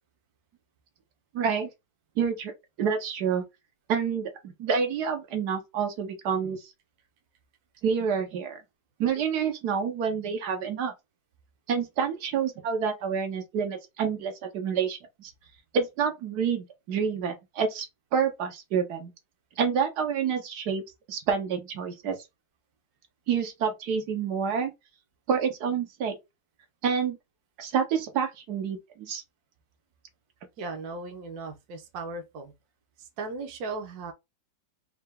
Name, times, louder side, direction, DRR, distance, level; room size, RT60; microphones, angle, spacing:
voice 1, 1.3-1.7 2.2-2.5 2.8-3.4 3.9-4.3 4.6-6.6 7.8-8.6 9.0-10.9 11.7-15.3 15.7-17.9 18.1-19.1 19.6-22.2 23.3-24.7 25.3-26.2 26.8-27.2 27.6-29.2, right 6 dB, 90° right, 1.5 m, -28 dB
voice 2, 30.6-32.5 33.0-34.1, right 3 dB, 75° right, 1.3 m, -37 dB
4.4 x 2.3 x 3.3 m
omnidirectional pair, 1.7 m